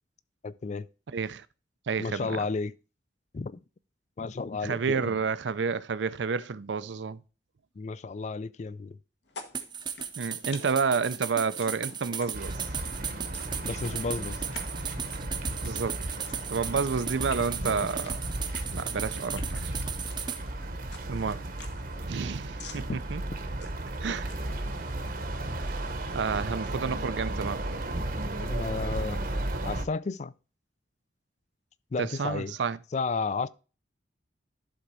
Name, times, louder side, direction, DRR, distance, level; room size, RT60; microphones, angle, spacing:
voice 1, 0.4-0.9 2.0-2.7 3.3-3.6 4.2-5.0 7.8-9.0 13.6-14.4 22.9-23.0 28.4-29.2 29.6-30.3 31.9-32.5 32.9-33.5, left 4 dB, 40° left, 0.4 m, -32 dB
voice 2, 1.1-1.5 1.9-2.5 4.6-7.2 10.2-12.6 15.6-16.0 16.5-18.4 18.7-19.7 21.1-21.5 22.0-23.2 24.0-24.3 26.1-27.6 32.0-32.8, right 5 dB, 75° right, 0.5 m, -30 dB
sound 1, 9.2-24.6, left 4 dB, 65° left, 1.3 m, -51 dB
sound 2, 9.5-20.4, right 7 dB, 25° right, 0.6 m, -36 dB
sound 3, 12.3-29.9, right 1 dB, 50° right, 1.0 m, -34 dB
11.5 x 3.9 x 4.7 m
head